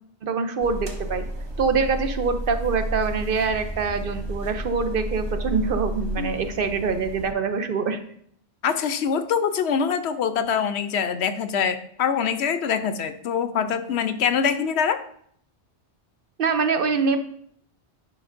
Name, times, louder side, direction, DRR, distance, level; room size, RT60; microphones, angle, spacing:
voice 1, 0.2-1.2 1.6-8.0 16.4-17.2, right 5 dB, 55° right, 8 dB, 0.8 m, -24 dB
sound 1, 0.6-7.3, right 1 dB, 25° right, 0.8 m, -32 dB
voice 2, 8.6-15.0, left 7 dB, 75° left, 10 dB, 0.9 m, -24 dB
10.5 x 5.2 x 2.6 m, 0.64 s
omnidirectional pair, 1.2 m